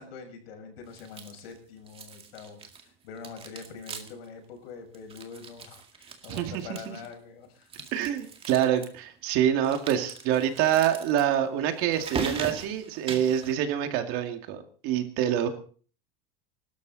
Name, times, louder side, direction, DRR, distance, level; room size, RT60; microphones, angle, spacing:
voice 1, 0.0-7.7, left 5 dB, 90° left, 4 dB, 6.4 m, -44 dB
sound 1, 0.9-1.6 1.9-2.9 3.2-4.3 4.6-4.7 4.9-7.1 7.6-8.9 9.6-13.5, right 6 dB, 20° right, 2.1 m, -39 dB
voice 2, 6.3-7.0 7.9-15.5, right 10 dB, 45° right, 6 dB, 2.4 m, -26 dB
23.5 x 13.0 x 4.1 m, 0.42 s
supercardioid pair, 165°, 29 cm